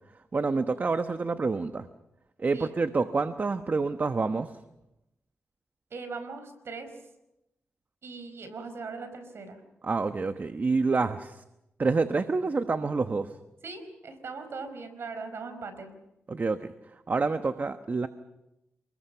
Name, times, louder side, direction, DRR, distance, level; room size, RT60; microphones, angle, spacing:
voice 1, 0.3-1.9 2.4-4.5 9.8-11.4 11.8-13.3 16.3-16.7 17.1-18.1, right 4 dB, 45° right, 9 dB, 1.2 m, -27 dB
voice 2, 5.9-6.9 8.0-9.6 13.6-15.9, right 4 dB, 75° right, 9 dB, 4.9 m, -40 dB
29.0 x 21.0 x 5.8 m, 0.90 s
cardioid pair, 60°, 4 cm